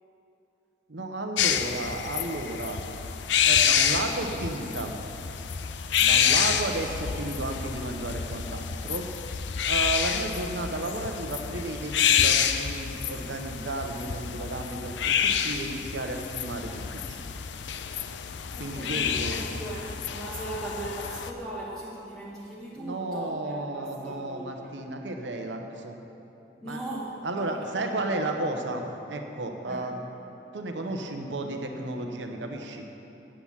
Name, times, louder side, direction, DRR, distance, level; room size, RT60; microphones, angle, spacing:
voice 1, 0.9-2.8 3.4-5.0 6.0-9.1 9.6-17.2 18.6-19.4 22.8-26.0 26.6-26.8 27.2-30.0 30.5-32.9, right 2 dB, 80° right, 4 dB, 0.9 m, -33 dB
sound 1, 1.4-21.3, left 8 dB, 80° left, 0.5 m, -28 dB
voice 2, 6.0-6.5 18.5-24.8 26.6-27.9 29.7-29.9, right 1 dB, ahead, -8 dB, 1.0 m, -39 dB
8.8 x 8.3 x 7.2 m, 2.9 s
head